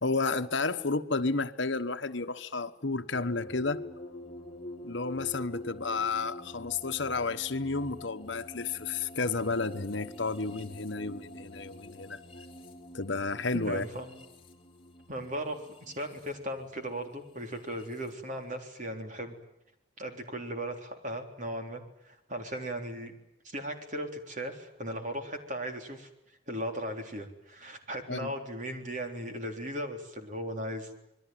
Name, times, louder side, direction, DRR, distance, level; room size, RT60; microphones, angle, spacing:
voice 1, 0.0-3.8 4.8-12.2 12.9-13.8 28.1-28.3, left 3 dB, 65° left, 1.3 m, -31 dB
sound 1, 3.1-18.1, left 1 dB, 25° left, 3.7 m, -46 dB
voice 2, 13.5-14.1 15.1-19.4 20.0-23.1 23.4-26.1 26.5-30.9, right 1 dB, 40° right, 3.7 m, -37 dB
26.5 x 22.0 x 9.3 m
head